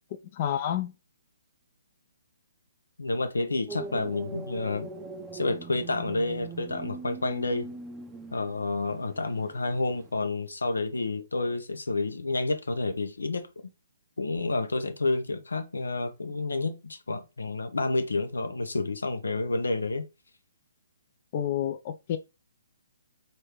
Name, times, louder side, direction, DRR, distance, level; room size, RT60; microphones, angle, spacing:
voice 1, 0.1-0.9 21.3-22.2, left 10 dB, 40° left, 0.4 m, -30 dB
voice 2, 3.0-4.9 5.3-7.7 8.3-13.5 14.2-20.0, left 3 dB, 90° left, 0.7 m, -29 dB
sound 1, 3.7-10.2, right 4 dB, 10° right, 0.5 m, -42 dB
4.3 x 2.7 x 3.2 m
hypercardioid pair, 140°, 0 cm